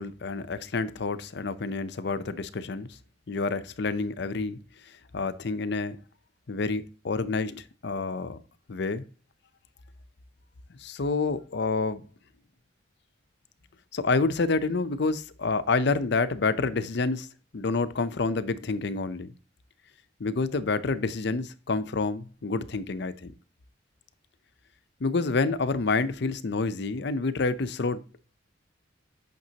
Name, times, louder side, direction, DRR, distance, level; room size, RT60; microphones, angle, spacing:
voice 1, 0.0-2.9 3.3-4.6 5.1-6.0 6.5-8.4 8.7-9.0 10.8-12.0 13.9-17.3 17.5-19.3 20.2-23.3 25.0-28.0, left 3 dB, 60° left, 0.6 m, -28 dB
9.2 x 5.9 x 2.8 m
head